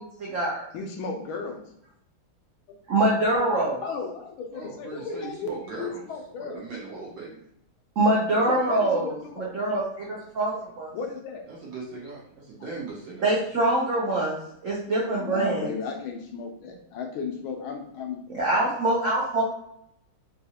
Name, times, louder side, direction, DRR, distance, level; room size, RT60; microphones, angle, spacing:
voice 1, 0.2-0.6 2.9-3.8 8.0-10.9 13.2-14.4 14.6-15.7 18.3-19.4, right 2 dB, 75° right, -5 dB, 0.7 m, -24 dB
voice 2, 0.7-1.6 2.7-2.8 3.8-6.7 8.5-9.5 10.9-11.5 15.2-18.2, left 4 dB, 80° left, 3 dB, 1.4 m, -35 dB
voice 3, 4.5-6.1 6.4-7.4 8.3-8.7 11.5-13.3, right 3 dB, 60° right, -4 dB, 1.1 m, -39 dB
3.9 x 2.4 x 2.8 m, 0.74 s
omnidirectional pair, 2.3 m